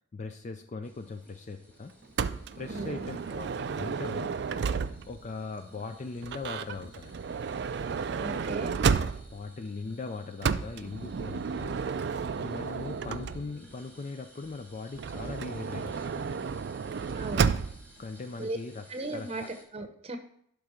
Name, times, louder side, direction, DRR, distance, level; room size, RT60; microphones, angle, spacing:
voice 1, 0.1-1.9 2.6-4.4 5.1-7.2 9.3-11.8 12.4-16.4 18.0-19.5, left 3 dB, 35° left, 7 dB, 0.4 m, -40 dB
sound 1, 0.8-19.6, equal, 10° left, 1.4 m, -56 dB
Motor vehicle (road) / Sliding door, 2.2-5.3 6.2-9.5 10.4-13.7 14.9-17.9, right 6 dB, 55° right, 0.3 m, -32 dB
voice 2, 2.7-3.1 8.1-8.8 17.1-17.5 18.4-18.6 18.9-20.2, right 2 dB, 30° right, 6 dB, 0.8 m, -37 dB
11.5 x 3.9 x 4.9 m, 0.68 s
head